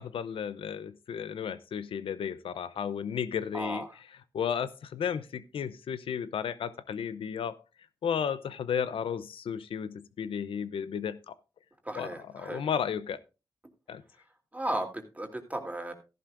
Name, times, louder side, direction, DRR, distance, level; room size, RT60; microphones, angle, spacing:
voice 1, 0.0-3.9 4.3-7.6 8.0-11.3 12.0-13.2 13.9-14.0, left 7 dB, 90° left, 0.6 m, -33 dB
voice 2, 3.5-3.9 11.8-12.6 14.5-15.9, right 1 dB, 15° right, 2.8 m, -35 dB
14.0 x 11.0 x 2.5 m
cardioid pair, 50°, 9 cm